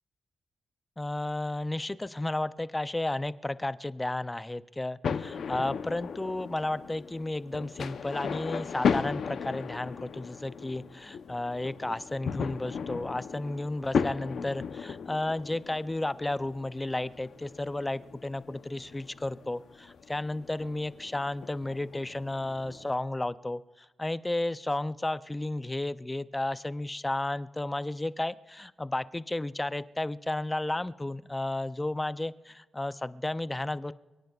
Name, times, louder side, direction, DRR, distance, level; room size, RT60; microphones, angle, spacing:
voice 1, 1.0-33.9, left 2 dB, 15° left, 14 dB, 0.4 m, -33 dB
sound 1, 5.0-22.9, left 6 dB, 70° left, 0.6 m, -36 dB
27.5 x 18.0 x 2.4 m, 1.2 s
wide cardioid pair, 145°, 0 cm